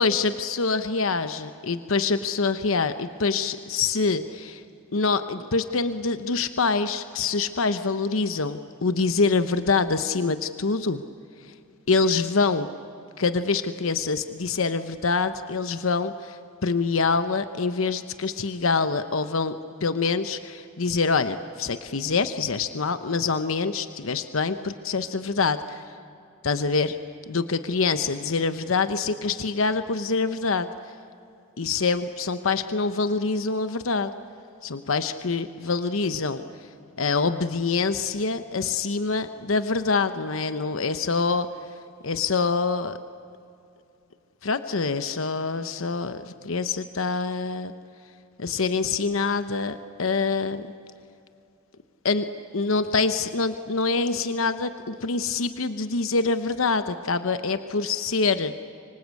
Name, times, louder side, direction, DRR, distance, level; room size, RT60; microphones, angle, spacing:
voice 1, 0.0-4.6 4.9-11.0 11.9-12.7 13.2-19.6 19.8-25.8 26.4-27.0 27.3-30.7 31.6-34.1 34.6-36.4 37.0-41.5 42.0-43.0 44.4-47.7 48.4-50.6 52.0-52.3 52.5-58.5, left 4 dB, 85° left, 10 dB, 0.9 m, -25 dB
25.0 x 25.0 x 8.4 m, 2.6 s
head